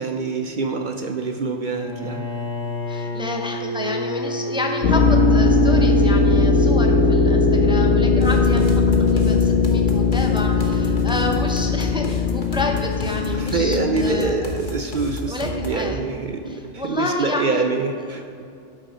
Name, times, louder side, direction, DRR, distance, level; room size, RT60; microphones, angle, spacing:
voice 1, 0.0-2.2 13.3-18.2, right 4 dB, 55° right, 5 dB, 0.6 m, -25 dB
Bowed string instrument, 1.7-6.5, left 1 dB, 25° right, 2.7 m, -29 dB
voice 2, 2.9-8.8 9.1-14.5 15.3-16.0 16.4-17.6 18.2-18.3, left 2 dB, 5° right, 1 dB, 0.6 m, -29 dB
sound 1, 4.8-14.3, left 4 dB, 85° left, 1.4 m, -18 dB
sound 2, 8.2-15.9, left 1 dB, 45° left, 1.2 m, -32 dB
11.5 x 6.2 x 5.5 m, 2.5 s
omnidirectional pair, 1.2 m